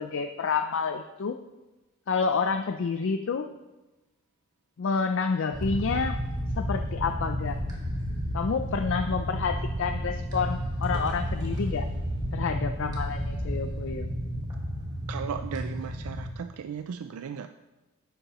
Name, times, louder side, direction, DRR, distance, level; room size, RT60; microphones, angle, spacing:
voice 1, 0.0-1.4 2.1-3.5 4.8-6.2 6.6-7.6 8.3-11.9 12.3-14.1, left 5 dB, 60° left, 7 dB, 0.4 m, -29 dB
sound 1, 5.5-16.3, equal, 20° right, 1.4 m, -32 dB
voice 2, 15.1-17.5, right 7 dB, 80° right, 9 dB, 0.4 m, -36 dB
10.5 x 8.4 x 3.0 m, 1.1 s
head